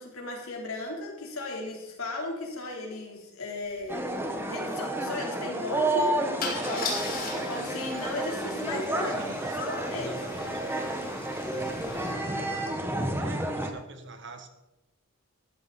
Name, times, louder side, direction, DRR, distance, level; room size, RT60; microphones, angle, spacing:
voice 1, 0.0-4.1 4.5-6.2 6.6-6.9 7.3-10.2, left 2 dB, 80° left, -1 dB, 3.7 m, -36 dB
Car / Engine starting / Idling, 3.8-3.9 4.2-4.4 6.4-12.1, left 4 dB, 45° left, 3.2 m, -39 dB
sound 1, 3.9-13.7, right 1 dB, 10° right, 1.1 m, -31 dB
voice 2, 9.0-9.5 9.9-10.5 13.2-14.5, right 3 dB, 55° right, 7 dB, 1.5 m, -44 dB
14.0 x 12.0 x 4.2 m, 0.96 s
head